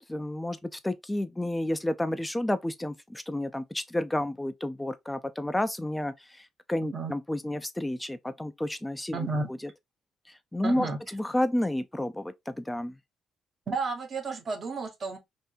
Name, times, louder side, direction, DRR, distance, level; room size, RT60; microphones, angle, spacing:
voice 1, 0.1-9.6 10.5-13.0, left 1 dB, 10° left, 0.5 m, -31 dB
voice 2, 6.8-7.1 9.1-9.5 10.6-11.0 13.7-15.2, right 4 dB, 45° right, 1.1 m, -32 dB
3.5 x 2.6 x 2.6 m
cardioid pair, 90°, 0 cm